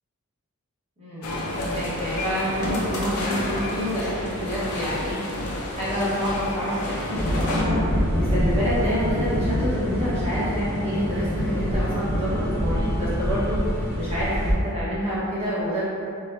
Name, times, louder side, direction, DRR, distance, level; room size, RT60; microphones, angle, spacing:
voice 1, 1.0-5.4 5.7-13.6 14.0-15.9, equal, 30° right, -11 dB, 1.4 m, -28 dB
sound 1, 1.2-7.6, left 1 dB, 80° left, 0.7 m, -30 dB
sound 2, 7.0-14.5, left 1 dB, 10° left, 0.4 m, -38 dB
sound 3, 7.1-14.5, equal, 70° right, 1.4 m, -25 dB
4.5 x 2.9 x 2.7 m, 2.6 s
head